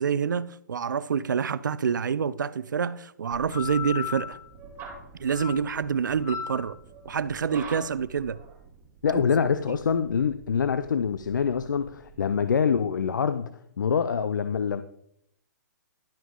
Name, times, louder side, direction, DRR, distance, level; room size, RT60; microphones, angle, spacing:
voice 1, 0.0-4.4 5.2-6.8 7.1-8.4 9.1-9.2 9.7-9.8, right 6 dB, 80° right, 0.5 m, -27 dB
sound 1, 3.3-12.5, left 5 dB, 25° right, 2.4 m, -39 dB
voice 2, 9.0-13.5 13.8-14.8, left 6 dB, 80° left, 0.5 m, -25 dB
11.5 x 6.1 x 3.7 m
hypercardioid pair, 135°, 10 cm